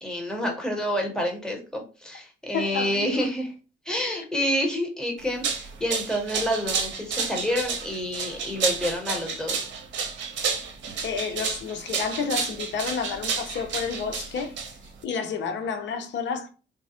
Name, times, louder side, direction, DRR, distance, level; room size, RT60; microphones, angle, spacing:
voice 1, 0.0-3.5 3.8-9.7, equal, 5° left, 1.1 m, -28 dB
voice 2, 2.5-3.3 11.0-14.5 15.0-16.5, left 5 dB, 65° left, 0.7 m, -30 dB
sound 1, 5.2-15.0, right 5 dB, 65° right, 0.7 m, -30 dB
3.7 x 2.0 x 2.8 m
cardioid pair, 90°, 20 cm